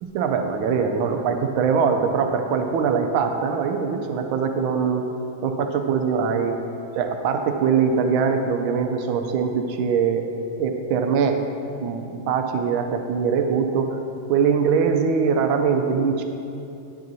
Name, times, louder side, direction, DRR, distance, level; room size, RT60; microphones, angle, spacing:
voice 1, 0.0-5.0 5.4-6.6 7.0-10.2 10.6-11.4 11.8-14.0 14.3-16.2, right 6 dB, 80° right, 5 dB, 1.4 m, -22 dB
9.2 x 7.6 x 2.7 m, 2.7 s
omnidirectional pair, 2.2 m